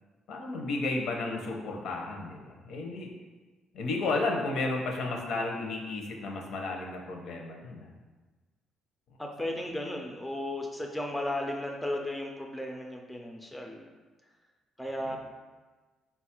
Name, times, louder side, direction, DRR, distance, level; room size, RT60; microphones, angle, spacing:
voice 1, 0.3-3.1 3.7-7.9 15.0-15.2, left 3 dB, 65° left, 1 dB, 0.6 m, -33 dB
voice 2, 9.2-13.9 14.8-15.2, left 1 dB, 5° left, 1 dB, 0.3 m, -35 dB
3.9 x 2.3 x 4.3 m, 1.3 s
cardioid pair, 150°, 0 cm